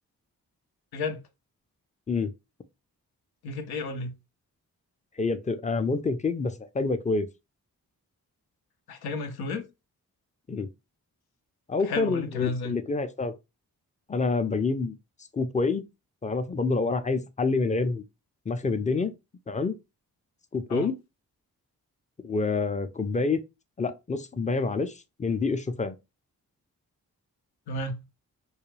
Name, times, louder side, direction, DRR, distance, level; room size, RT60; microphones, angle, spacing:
voice 1, 3.4-4.2 8.9-9.6 11.8-12.7 20.7-20.9 27.7-28.0, left 2 dB, 85° left, 0.6 m, -32 dB
voice 2, 5.2-7.3 10.5-10.7 11.7-13.3 14.1-15.0 15.3-15.8 16.2-18.0 18.5-19.1 19.5-19.7 20.5-21.0 22.2-23.4 23.8-26.0, left 4 dB, 20° left, 0.4 m, -27 dB
2.3 x 2.2 x 3.1 m
supercardioid pair, 45°, 37 cm